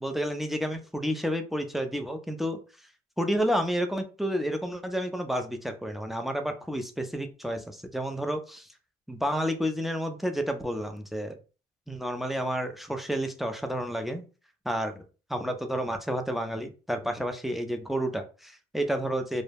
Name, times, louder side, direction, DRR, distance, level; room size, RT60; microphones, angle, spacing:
voice 1, 0.0-2.6 3.2-8.7 9.1-11.3 11.9-14.2 14.7-15.0 15.3-19.4, equal, ahead, 6 dB, 0.4 m, -30 dB
2.2 x 2.0 x 3.2 m, 0.35 s
cardioid pair, 110°, 17 cm